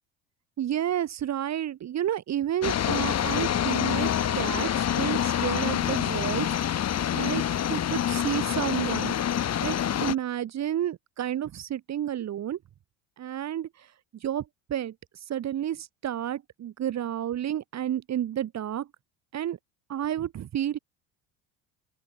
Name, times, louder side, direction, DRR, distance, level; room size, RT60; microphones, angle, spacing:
voice 1, 0.6-6.6 7.1-7.4 7.7-9.1 9.6-12.6 13.2-13.9 14.2-14.4 14.7-18.9 19.3-19.6 19.9-20.8, right 11 dB, 45° right, 3.1 m, -31 dB
sound 1, 2.6-10.1, left 10 dB, 40° left, 3.3 m, -26 dB
open air
hypercardioid pair, 75°, 38 cm